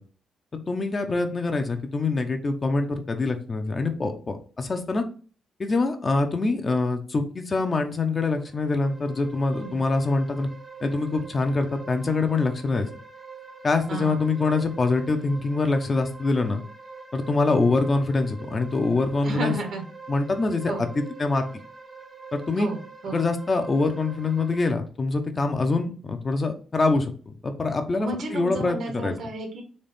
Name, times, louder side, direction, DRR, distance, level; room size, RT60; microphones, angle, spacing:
voice 1, 0.5-5.0 5.6-10.5 10.8-12.9 13.6-16.6 17.1-19.5 20.1-20.7 21.2-21.4 22.3-22.7 23.1-29.1, left 3 dB, 35° left, 6 dB, 0.7 m, -24 dB
sound 1, 8.4-24.7, right 4 dB, 20° right, 0.8 m, -45 dB
voice 2, 9.5-9.8 13.9-14.2 19.2-19.9 20.7-20.9 22.6-23.2 28.0-29.6, right 2 dB, 70° right, 4 dB, 1.3 m, -32 dB
4.2 x 3.0 x 3.5 m, 0.39 s
cardioid pair, 100°, 0 cm